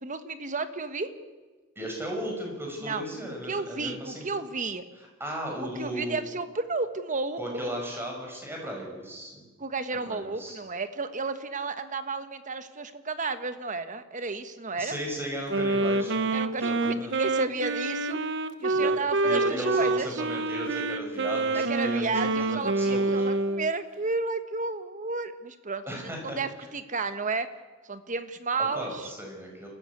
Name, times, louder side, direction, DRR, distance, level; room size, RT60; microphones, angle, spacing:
voice 1, 0.0-1.1 2.8-3.0 3.4-4.8 5.6-7.8 9.6-15.0 16.3-18.2 18.6-20.2 21.5-25.8 26.2-27.5 27.9-29.1, right 3 dB, 40° right, 10 dB, 1.4 m, -32 dB
voice 2, 1.8-4.2 5.2-6.2 7.4-9.4 10.1-10.6 14.8-17.2 18.7-18.9 19.2-23.3 25.9-26.4 28.7-29.7, right 1 dB, 10° right, 0 dB, 6.0 m, -36 dB
Wind instrument woodwind instrument, 15.5-23.7, right 2 dB, 65° right, 1.0 m, -27 dB
29.0 x 14.0 x 8.3 m, 1.3 s
head